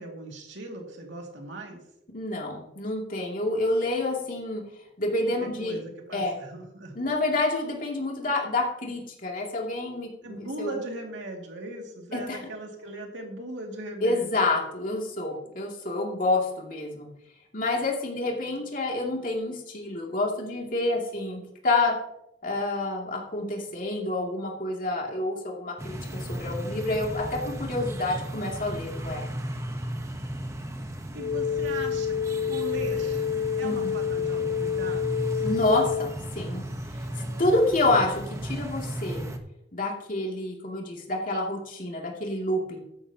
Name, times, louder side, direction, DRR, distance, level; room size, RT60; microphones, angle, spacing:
voice 1, 0.0-1.8 5.4-6.9 10.2-14.3 31.1-33.2 33.6-35.3, right 2 dB, 85° right, 1 dB, 2.4 m, -39 dB
voice 2, 2.1-4.6 5.0-5.8 6.1-6.4 6.9-10.8 12.1-12.4 14.0-17.1 17.5-21.9 22.4-26.0 26.3-29.2 33.6-33.9 35.4-36.6 37.2-39.3 39.7-42.8, left 2 dB, 45° left, -1 dB, 2.6 m, -28 dB
sound 1, 25.8-39.4, right 1 dB, 15° right, 1.0 m, -35 dB
sound 2, 31.1-36.1, left 8 dB, 90° left, 1.2 m, -28 dB
13.0 x 11.0 x 2.9 m, 0.83 s
head